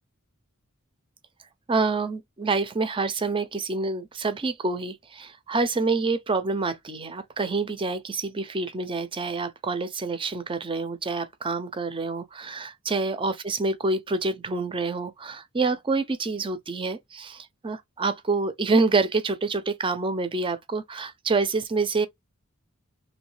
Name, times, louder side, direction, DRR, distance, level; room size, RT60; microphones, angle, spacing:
voice 1, 1.7-22.1, right 3 dB, 25° right, 0.5 m, -27 dB
3.1 x 2.7 x 3.1 m
head